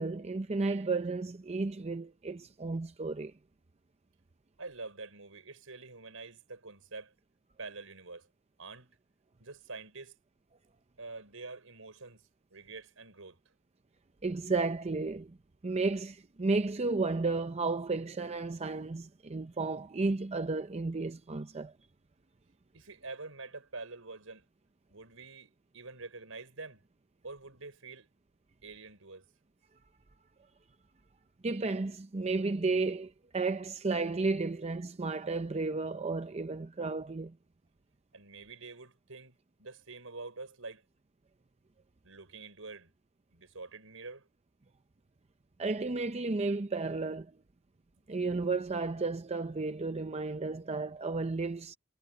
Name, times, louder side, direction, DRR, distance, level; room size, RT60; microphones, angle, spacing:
voice 1, 0.0-3.3 14.2-15.4 15.6-21.7 31.4-37.3 45.6-47.3 48.1-51.8, right 3 dB, 30° right, 0.6 m, -33 dB
voice 2, 4.6-7.1 7.6-8.3 8.6-8.9 9.4-10.2 11.0-13.4 22.7-24.5 24.9-26.8 27.2-28.1 28.6-29.2 38.1-40.8 42.0-42.9 43.3-44.3, right 3 dB, 75° right, 6.0 m, -46 dB
head